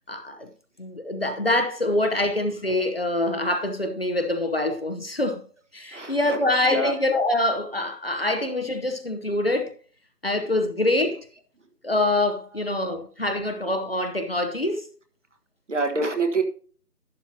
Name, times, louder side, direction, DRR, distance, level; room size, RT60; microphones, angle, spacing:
voice 1, 0.1-0.5 0.8-5.4 5.7-9.7 10.2-11.2 11.8-14.9, left 1 dB, 40° left, 0.9 m, -25 dB
voice 2, 5.9-6.4 6.7-6.9 15.7-16.4, right 3 dB, 50° right, 1.5 m, -26 dB
11.5 x 8.9 x 2.8 m
figure-of-eight pair, 175°, 47 cm